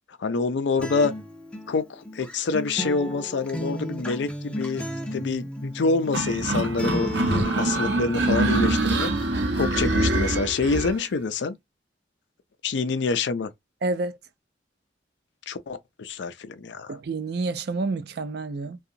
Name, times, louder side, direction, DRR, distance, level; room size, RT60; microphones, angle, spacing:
voice 1, 0.2-1.1 1.7-4.8 5.1-9.1 9.6-11.6 12.6-13.5 15.5-17.0, left 4 dB, 85° left, 0.5 m, -26 dB
Acoustic guitar, 0.8-8.8, left 1 dB, 5° left, 0.5 m, -35 dB
sound 1, 6.1-10.9, right 2 dB, 80° right, 0.8 m, -24 dB
voice 2, 13.8-14.2 16.9-18.8, right 3 dB, 60° right, 0.4 m, -29 dB
2.8 x 2.3 x 2.5 m
head